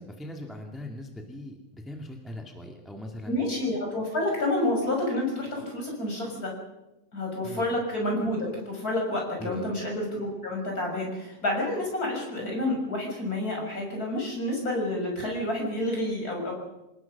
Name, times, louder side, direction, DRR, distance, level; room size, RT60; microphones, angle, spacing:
voice 1, 0.0-3.4 7.4-7.7 9.4-9.7, left 1 dB, ahead, 2 dB, 1.6 m, -40 dB
voice 2, 3.3-6.5 7.1-16.5, left 1 dB, 25° left, 0 dB, 7.0 m, -29 dB
27.5 x 19.5 x 6.0 m, 0.97 s
omnidirectional pair, 3.6 m